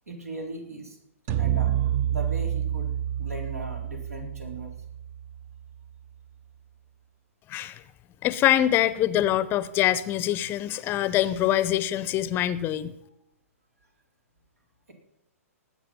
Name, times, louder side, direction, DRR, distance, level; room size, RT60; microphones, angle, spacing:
voice 1, 0.1-1.0 1.4-2.9 3.2-4.7, right 1 dB, 80° right, 1 dB, 4.0 m, -38 dB
sound 1, 1.3-5.6, right 11 dB, 35° right, 0.8 m, -28 dB
voice 2, 7.5-7.8 8.2-12.9, left 12 dB, 25° left, 16 dB, 0.7 m, -24 dB
19.5 x 8.6 x 5.6 m, 0.83 s
figure-of-eight pair, 115°, 8 cm